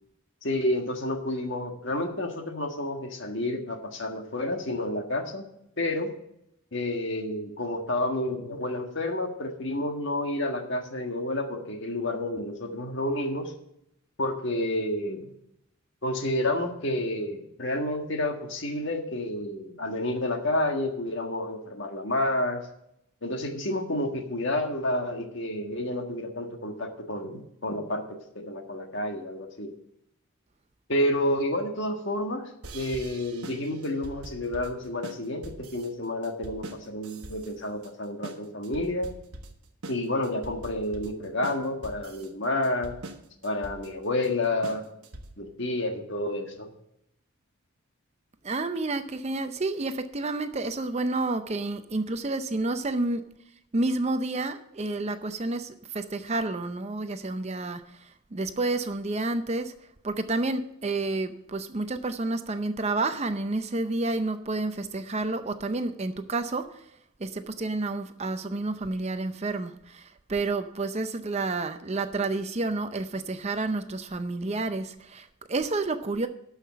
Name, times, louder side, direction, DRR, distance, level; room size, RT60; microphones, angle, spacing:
voice 1, 0.4-5.4 5.8-6.1 6.7-13.5 14.2-15.3 16.0-22.6 23.2-29.7 30.9-39.1 39.9-43.0 43.4-44.8 45.4-46.7, left 1 dB, 55° left, 4 dB, 1.6 m, -30 dB
sound 1, 32.6-45.5, right 2 dB, 85° right, 1.2 m, -43 dB
voice 2, 48.4-53.3 53.7-59.7 60.0-66.9 67.2-76.3, right 2 dB, 30° right, 9 dB, 0.5 m, -30 dB
12.5 x 5.7 x 7.3 m, 0.77 s
head